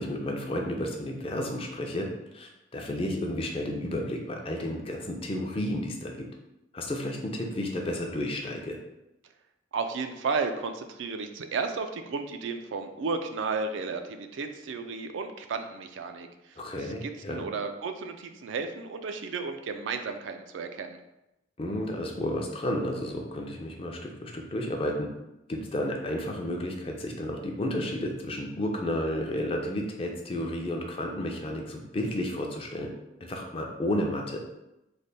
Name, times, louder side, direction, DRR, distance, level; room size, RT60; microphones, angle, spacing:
voice 1, 0.0-2.1 2.3-6.1 6.7-8.8 16.6-17.4 21.6-25.1 25.5-32.9 33.2-34.4, left 1 dB, 30° left, 1 dB, 0.5 m, -32 dB
voice 2, 9.7-21.0, right 4 dB, 85° right, 6 dB, 0.4 m, -33 dB
3.3 x 2.2 x 4.0 m, 0.92 s
head